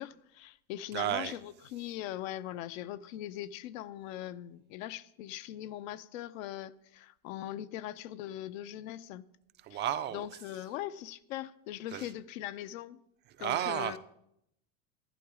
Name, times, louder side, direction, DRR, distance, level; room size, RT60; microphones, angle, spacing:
voice 1, 0.0-9.3 9.7-9.8 10.1-13.0 13.4-14.0, left 13 dB, 80° left, 0.8 m, -41 dB
voice 2, 0.9-1.3 9.6-10.3 11.9-12.1 13.4-14.0, right 11 dB, 30° right, 0.4 m, -32 dB
11.5 x 11.5 x 4.9 m
supercardioid pair, 150°, 39 cm